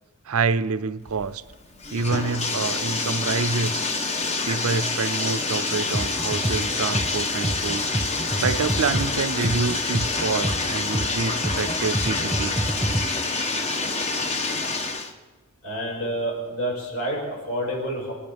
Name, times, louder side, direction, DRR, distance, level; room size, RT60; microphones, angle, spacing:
voice 1, 0.3-1.4 1.9-3.8 4.5-7.8 8.4-12.6, right 4 dB, 80° right, 0.5 m, -27 dB
Bathtub (filling or washing), 1.1-15.1, left 3 dB, 30° left, 1.0 m, -27 dB
sound 1, 5.7-13.0, right 1 dB, 5° right, 1.1 m, -28 dB
voice 2, 15.6-18.1, right 1 dB, 70° left, 5.6 m, -28 dB
25.5 x 10.0 x 3.5 m
head